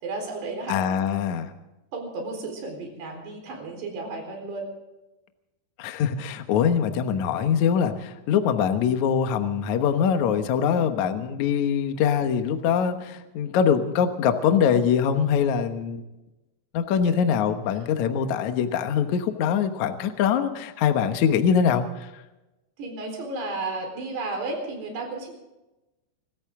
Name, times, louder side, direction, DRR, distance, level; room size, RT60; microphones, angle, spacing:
voice 1, 0.0-0.8 1.9-4.7 10.7-10.9 17.1-17.2 22.8-25.3, right 3 dB, 65° right, 3 dB, 6.2 m, -33 dB
voice 2, 0.7-1.5 5.8-16.0 16.7-22.1, left 7 dB, 85° left, 7 dB, 1.6 m, -23 dB
26.0 x 14.0 x 3.7 m, 1.0 s
omnidirectional pair, 5.3 m